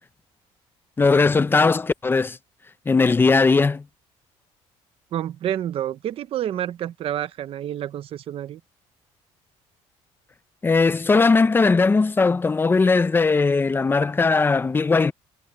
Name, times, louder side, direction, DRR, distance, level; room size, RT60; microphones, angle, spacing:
voice 1, 1.0-2.4 2.9-3.8 10.6-15.1, left 4 dB, 15° left, 0.7 m, -19 dB
voice 2, 5.1-8.6, right 11 dB, 50° right, 0.8 m, -29 dB
cardioid pair, 130°, 12 cm